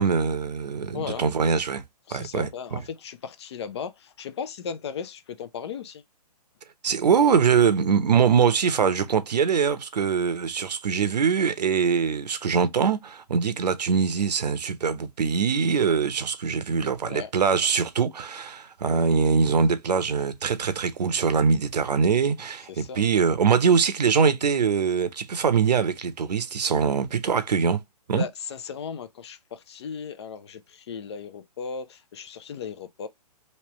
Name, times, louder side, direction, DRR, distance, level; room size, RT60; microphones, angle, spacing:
voice 1, 0.0-1.8 2.1-2.8 6.8-27.8 28.1-28.2, right 6 dB, 85° right, 0.8 m, -23 dB
voice 2, 0.9-1.2 2.1-6.0 17.1-17.3 18.9-19.1 22.7-23.1 28.1-33.1, left 6 dB, 45° left, 0.5 m, -36 dB
3.2 x 2.9 x 2.9 m
hypercardioid pair, 150°, 20 cm